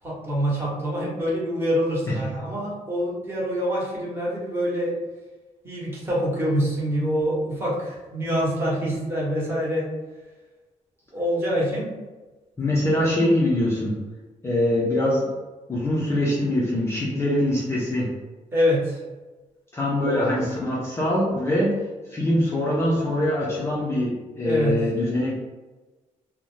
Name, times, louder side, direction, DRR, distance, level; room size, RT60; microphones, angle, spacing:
voice 1, 0.0-5.0 5.6-9.9 11.1-12.0 18.5-19.0 20.0-20.4 24.4-24.8, equal, 20° right, -6 dB, 0.9 m, -25 dB
voice 2, 12.6-14.0 14.4-15.3 15.7-18.1 19.7-21.8 22.1-25.4, left 1 dB, 20° left, -6 dB, 0.4 m, -23 dB
2.6 x 2.0 x 3.0 m, 1.2 s
wide cardioid pair, 170°, 13 cm